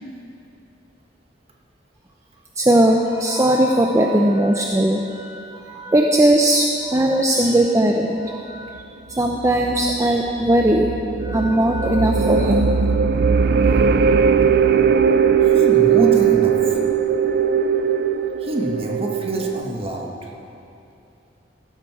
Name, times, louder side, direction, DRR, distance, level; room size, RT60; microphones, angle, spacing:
voice 1, 2.6-8.7 9.1-10.9 11.2-12.7, right 1 dB, 15° right, 1 dB, 0.7 m, -18 dB
sound 1, 9.3-19.6, right 7 dB, 55° right, 0.5 m, -19 dB
voice 2, 15.4-16.8 18.4-20.3, right 1 dB, 30° right, 0 dB, 1.5 m, -25 dB
16.0 x 12.0 x 4.8 m, 2.7 s
head